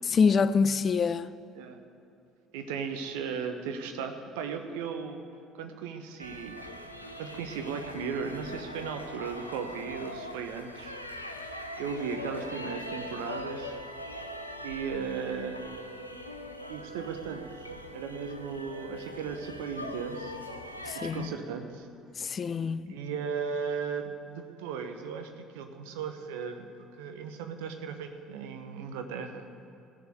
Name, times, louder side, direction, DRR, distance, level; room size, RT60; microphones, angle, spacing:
voice 1, 0.1-1.3 20.9-21.3 22.2-22.9, left 5 dB, 35° left, 0.4 m, -26 dB
voice 2, 2.5-5.2 5.5-6.6 7.2-10.9 11.4-11.5 11.8-13.8 14.6-15.6 16.7-17.5 17.9-20.4 20.9-21.9 22.2-22.5 22.9-26.7 27.0-29.5, right 6 dB, 65° right, 1.0 m, -36 dB
sound 1, 6.2-21.3, left 1 dB, 90° left, 0.6 m, -41 dB
16.0 x 7.0 x 7.9 m
figure-of-eight pair, 55°, 0 cm